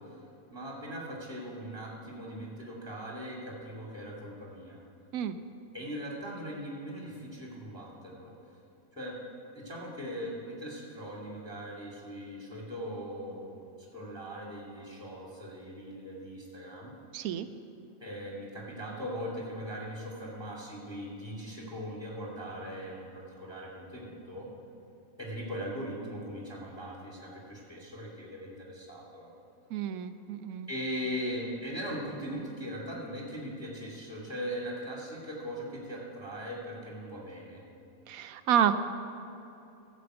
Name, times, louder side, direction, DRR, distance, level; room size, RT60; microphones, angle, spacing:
voice 1, 0.5-4.8 5.7-8.3 8.9-9.2 9.5-16.9 18.0-24.5 25.2-29.3 30.7-37.6, equal, 5° right, -4 dB, 2.2 m, -40 dB
voice 2, 17.1-17.5 29.7-30.7 38.1-38.7, right 10 dB, 90° right, 11 dB, 1.1 m, -29 dB
15.5 x 5.2 x 7.9 m, 2.8 s
omnidirectional pair, 1.5 m